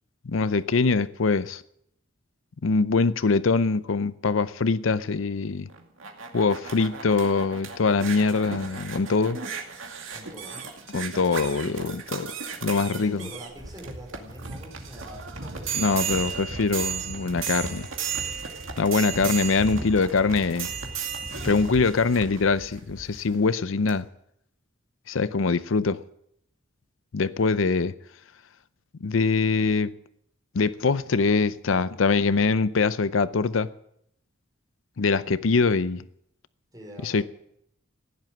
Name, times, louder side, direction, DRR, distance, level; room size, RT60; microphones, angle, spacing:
voice 1, 0.2-1.6 2.6-5.7 6.3-9.4 10.9-12.3 12.6-13.3 15.7-17.9 18.8-20.7 21.4-24.1 25.1-26.0 27.1-27.9 29.0-29.9 30.5-33.7 35.0-36.1 37.0-37.2, left 4 dB, 85° left, 0.6 m, -23 dB
sound 1, 5.7-23.3 23.9-24.0, right 6 dB, 90° right, 2.3 m, -35 dB
voice 2, 10.1-10.6 12.8-16.3 36.7-37.2, equal, 20° right, 5.0 m, -44 dB
16.0 x 10.5 x 7.6 m
head